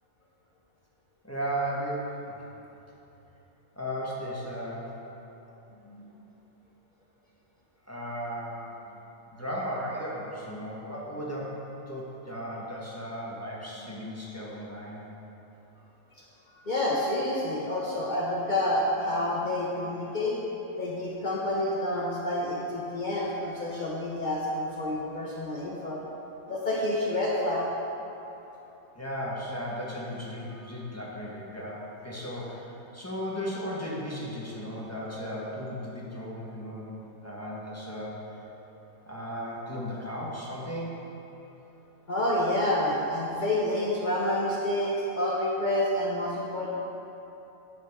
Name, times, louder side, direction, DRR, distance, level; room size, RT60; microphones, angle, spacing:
voice 1, 1.2-2.4 3.7-4.9 7.9-8.7 9.3-15.1 28.9-36.9 37.2-38.1 39.1-41.0, equal, 10° left, -6 dB, 1.2 m, -35 dB
voice 2, 5.8-6.2 11.1-11.4 13.8-13.9 16.5-20.4 20.8-26.0 26.5-27.7 30.5-30.8 37.4-38.3 42.1-46.7, left 1 dB, 40° left, -5 dB, 0.9 m, -29 dB
9.9 x 6.6 x 3.5 m, 3.0 s
omnidirectional pair, 1.4 m